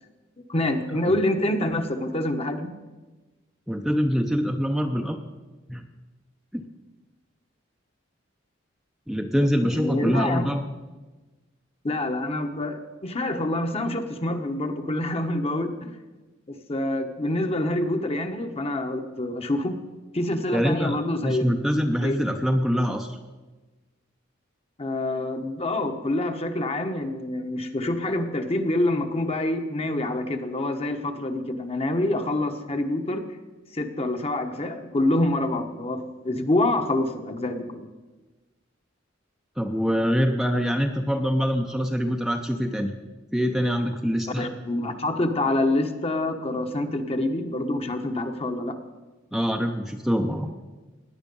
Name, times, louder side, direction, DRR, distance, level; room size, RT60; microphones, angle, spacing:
voice 1, 0.5-2.7 9.6-10.5 11.8-15.9 16.5-19.8 20.1-21.5 22.0-22.2 24.8-33.2 33.7-37.9 44.4-48.8, left 1 dB, 30° left, 6 dB, 1.1 m, -26 dB
voice 2, 3.7-5.2 5.7-5.9 6.5-6.6 9.1-10.6 20.5-21.0 21.2-23.2 39.6-42.9 43.3-44.5 49.3-50.5, equal, ahead, 3 dB, 0.6 m, -24 dB
17.5 x 10.0 x 5.4 m, 1.2 s
head